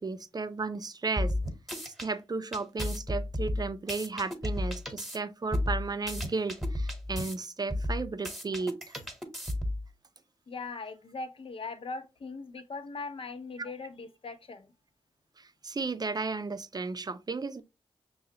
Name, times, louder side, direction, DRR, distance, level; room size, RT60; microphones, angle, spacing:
voice 1, 0.0-1.4 2.0-9.0 15.4-17.6, right 4 dB, 35° right, 0.5 m, -34 dB
sound 1, 1.2-2.1 2.5-5.2 5.5-7.4 7.7-9.9, left 1 dB, ahead, 1.2 m, -33 dB
voice 2, 10.5-14.7, left 4 dB, 55° left, 0.8 m, -40 dB
5.5 x 2.3 x 2.8 m
cardioid pair, 45°, 11 cm